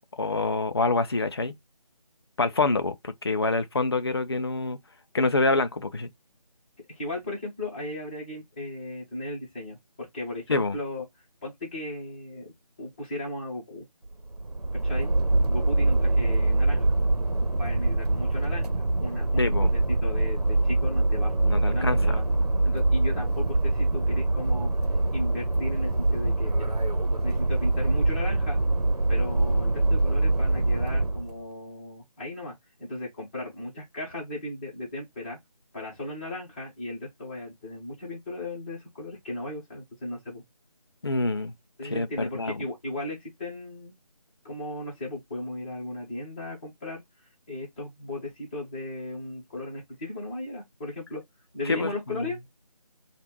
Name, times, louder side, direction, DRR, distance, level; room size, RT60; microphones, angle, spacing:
voice 1, 0.2-1.6 2.4-4.8 5.1-6.1 10.5-10.7 19.4-19.7 21.5-22.1 41.0-41.5 41.8-42.6 51.7-52.2, left 3 dB, 40° left, 0.5 m, -26 dB
voice 2, 6.9-11.0 11.4-12.5 12.8-13.8 14.7-15.1 15.5-17.0 17.5-22.2 22.6-24.7 25.1-26.7 27.2-28.6 29.1-35.4 35.7-40.4 41.8-43.9 44.4-47.0 47.5-51.2 51.5-52.4, left 1 dB, 15° left, 1.2 m, -36 dB
sound 1, 14.1-31.3, right 2 dB, 75° right, 1.0 m, -24 dB
3.4 x 2.5 x 4.4 m
figure-of-eight pair, 165°, 20 cm